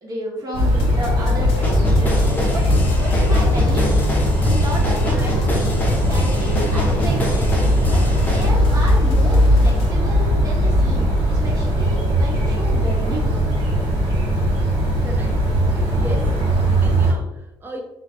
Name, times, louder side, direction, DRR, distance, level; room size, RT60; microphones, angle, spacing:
voice 1, 0.0-2.7 3.0-3.9 4.4-7.3 7.9-13.3, right 1 dB, 40° right, -2 dB, 1.0 m, -31 dB
sound 1, 0.5-17.1, equal, 65° right, 1.2 m, -18 dB
sound 2, 0.8-10.0, left 1 dB, 70° left, 0.4 m, -34 dB
sound 3, 1.6-8.5, equal, 20° left, 0.6 m, -25 dB
voice 2, 5.0-5.3 15.0-15.4 15.9-17.8, right 1 dB, 20° right, 1 dB, 0.5 m, -35 dB
2.5 x 2.2 x 2.5 m, 0.91 s
supercardioid pair, 85°, 9 cm